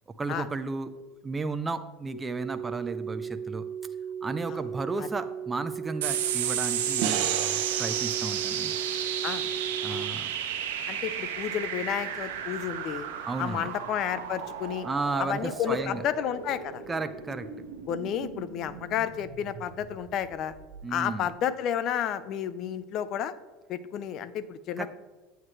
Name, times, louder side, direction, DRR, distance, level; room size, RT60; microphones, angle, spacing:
voice 1, 0.1-0.9 1.2-3.7 4.2-8.8 9.8-10.3 13.2-13.7 14.8-16.0 16.9-17.5 20.8-21.3 24.8-24.9, right 3 dB, 15° right, 9 dB, 0.5 m, -34 dB
sound 1, 2.1-10.0, right 7 dB, 85° left, 1.4 m, -36 dB
sound 2, 6.0-20.8, right 9 dB, 90° right, 1.1 m, -33 dB
sound 3, 7.0-10.2, right 9 dB, 70° right, 0.9 m, -35 dB
voice 2, 10.9-13.1 13.4-14.9 15.2-16.8 17.9-20.5 20.9-23.3 23.7-24.9, left 9 dB, 50° left, 15 dB, 0.6 m, -31 dB
8.8 x 8.0 x 3.2 m, 1.2 s
supercardioid pair, 105°, 0 cm